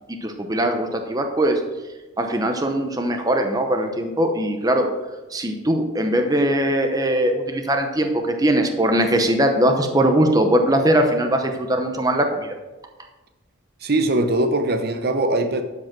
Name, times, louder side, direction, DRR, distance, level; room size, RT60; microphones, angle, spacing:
voice 1, 0.1-1.6 2.2-4.9 5.3-12.6, right 1 dB, 20° right, 4 dB, 0.8 m, -20 dB
voice 2, 13.8-15.6, right 2 dB, 50° right, 7 dB, 0.8 m, -21 dB
12.0 x 5.2 x 6.0 m, 1.1 s
head